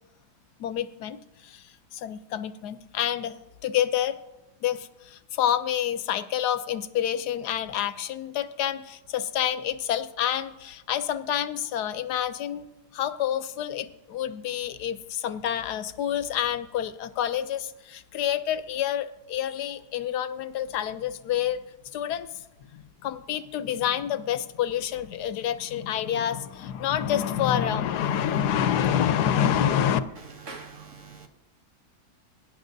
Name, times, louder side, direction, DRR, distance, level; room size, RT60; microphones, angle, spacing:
voice 1, 0.6-3.3 3.6-4.2 4.6-12.7 12.9-21.6 21.9-22.3 22.7-30.0, left 10 dB, 75° left, 1.2 m, -28 dB
voice 2, 30.5-31.3, right 4 dB, 50° right, 1.3 m, -42 dB
22.5 x 10.5 x 2.6 m
omnidirectional pair, 1.8 m